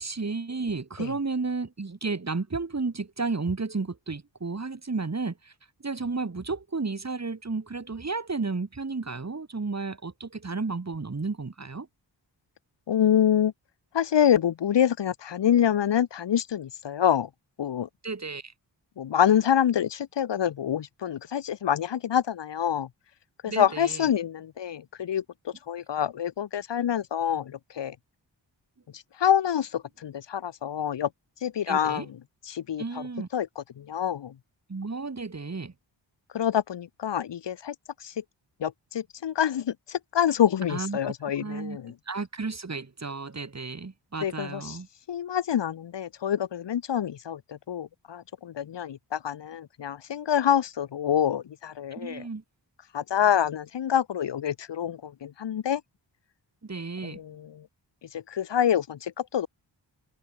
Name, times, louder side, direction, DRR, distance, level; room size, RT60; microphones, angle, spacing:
voice 1, 0.0-5.5 5.8-11.9 18.0-18.5 23.4-24.1 31.7-32.1 32.8-33.3 34.7-35.7 40.7-41.1 41.4-41.8 42.1-44.9 52.0-52.4 56.6-57.2, right 4 dB, 35° right, 2.2 m, -32 dB
voice 2, 12.9-13.5 13.9-17.3 17.6-17.9 19.0-22.9 23.4-28.0 28.9-31.1 31.4-32.2 32.5-33.0 33.3-34.3 36.3-37.7 38.0-38.2 38.6-41.9 44.2-44.8 45.1-52.3 52.9-55.8 57.0-57.7 58.1-59.5, left 9 dB, 70° left, 0.8 m, -26 dB
wide cardioid pair, 75°, 45 cm